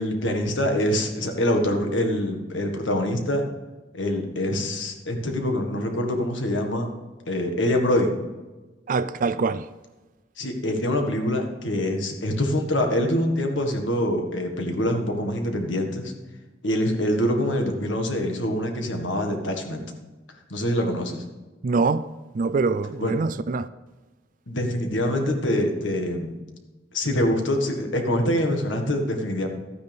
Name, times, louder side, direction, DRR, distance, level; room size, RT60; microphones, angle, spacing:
voice 1, 0.0-3.4 3.9-6.9 7.3-8.1 10.4-16.1 16.6-19.8 20.5-21.2 23.0-23.1 24.5-26.3 26.9-29.5, left 1 dB, 80° left, 1.7 m, -25 dB
voice 2, 8.9-9.6 21.6-22.0 22.4-23.7, right 4 dB, 45° right, 0.4 m, -24 dB
13.0 x 9.4 x 3.5 m
head